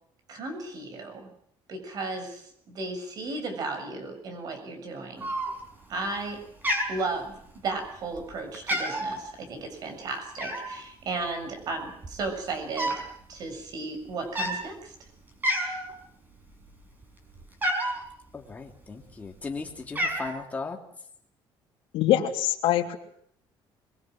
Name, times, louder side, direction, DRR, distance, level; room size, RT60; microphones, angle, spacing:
voice 1, 0.3-1.3 1.7-5.3 5.9-6.4 6.9-7.4 7.6-12.9 13.3-15.0, right 3 dB, 45° right, 7 dB, 7.2 m, -34 dB
Cat, 5.2-5.8 6.2-6.4 6.6-7.7 8.1-8.3 8.5-9.2 10.4-10.8 11.6-11.7 11.9-13.1 13.4-13.6 14.2-14.6 15.1-15.2 15.4-15.9 16.4-18.0 18.8-19.4 19.7-20.3, equal, 20° right, 5.7 m, -29 dB
voice 2, 18.3-20.8, left 4 dB, 15° left, 2 dB, 2.9 m, -37 dB
voice 3, 21.9-23.0, left 12 dB, 80° left, 2 dB, 3.4 m, -23 dB
23.5 x 22.0 x 7.8 m, 0.67 s
cardioid pair, 170°, 9 cm